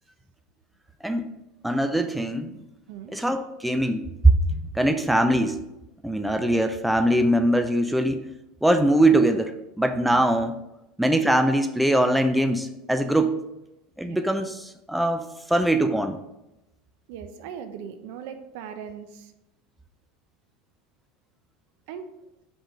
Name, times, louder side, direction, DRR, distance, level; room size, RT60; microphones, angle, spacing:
voice 1, 1.6-2.6 3.1-5.6 6.0-8.2 8.6-10.6 11.0-13.3 14.0-16.2, right 1 dB, ahead, 7 dB, 0.3 m, -22 dB
voice 2, 17.1-19.3 21.9-22.1, right 8 dB, 70° right, 8 dB, 0.7 m, -39 dB
5.1 x 3.8 x 5.0 m, 0.92 s
supercardioid pair, 145°, 0 cm